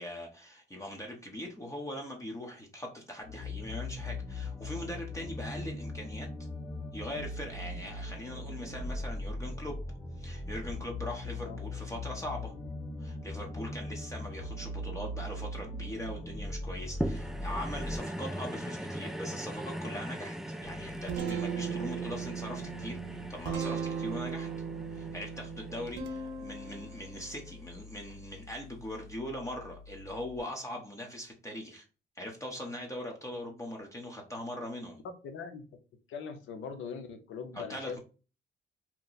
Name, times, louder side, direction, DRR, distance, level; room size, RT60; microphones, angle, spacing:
voice 1, 0.0-6.3 6.9-9.8 10.2-12.5 13.0-20.4 20.6-24.5 24.9-31.8 32.2-35.0 37.5-38.0, left 1 dB, 15° left, 0 dB, 0.7 m, -41 dB
sound 1, 3.2-18.0, left 1 dB, 50° left, 1.3 m, -39 dB
sound 2, 17.0-27.5 28.1-28.2, right 1 dB, ahead, 0.3 m, -40 dB
Guitar, 20.6-30.4, right 6 dB, 75° right, 0.6 m, -39 dB
voice 2, 35.0-35.7 36.1-38.0, left 5 dB, 80° left, 7 dB, 0.7 m, -41 dB
2.9 x 2.1 x 3.8 m, 0.35 s
cardioid pair, 90°, 20 cm